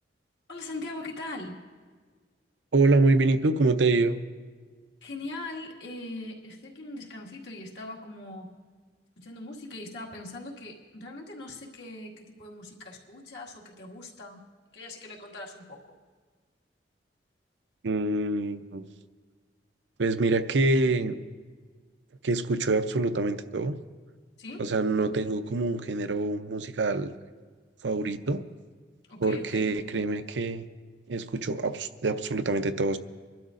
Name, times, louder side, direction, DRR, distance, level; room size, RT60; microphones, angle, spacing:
voice 1, 0.5-1.6 5.0-8.5 9.2-14.5 14.7-16.0 24.4-24.7 29.1-29.7, left 2 dB, 70° left, -2 dB, 2.0 m, -41 dB
voice 2, 2.7-4.2 17.8-18.8 20.0-21.2 22.2-23.8 24.6-27.1 27.8-28.4 29.2-30.7 31.1-33.0, right 3 dB, 80° right, 10 dB, 0.6 m, -25 dB
26.0 x 12.0 x 2.5 m, 1.5 s
head